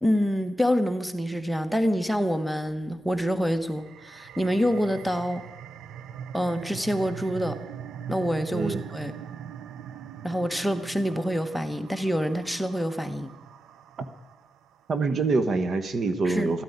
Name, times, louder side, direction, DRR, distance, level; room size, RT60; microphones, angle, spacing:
voice 1, 0.0-5.4 6.3-7.6 8.1-9.1 10.2-13.3 16.2-16.5, equal, ahead, 11 dB, 1.1 m, -26 dB
sound 1, 3.7-14.8, right 9 dB, 80° right, 0.5 m, -42 dB
voice 2, 14.9-16.6, right 3 dB, 50° right, 11 dB, 1.1 m, -25 dB
13.5 x 9.4 x 9.5 m, 1.1 s
cardioid pair, 90°, 0 cm